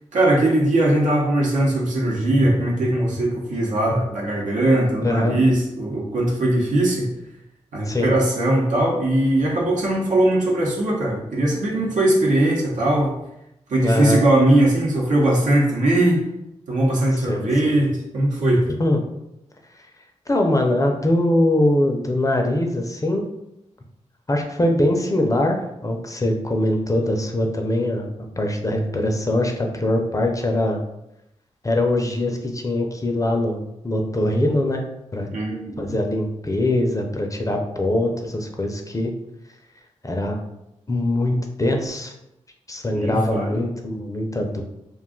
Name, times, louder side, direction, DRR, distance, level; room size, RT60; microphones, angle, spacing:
voice 1, 0.1-7.1 7.7-13.1 13.7-16.2 16.7-18.6 35.3-35.9 42.9-43.7, right 1 dB, 80° right, -4 dB, 0.8 m, -20 dB
voice 2, 5.0-5.4 7.8-8.1 13.8-14.2 17.1-17.5 18.7-19.0 20.3-23.2 24.3-28.1 28.4-30.8 31.6-34.8 35.1-35.3 35.8-39.1 40.0-40.4 40.9-42.1 42.7-44.6, left 1 dB, 25° left, 2 dB, 0.5 m, -22 dB
2.4 x 2.3 x 3.7 m, 0.86 s
cardioid pair, 50°, 13 cm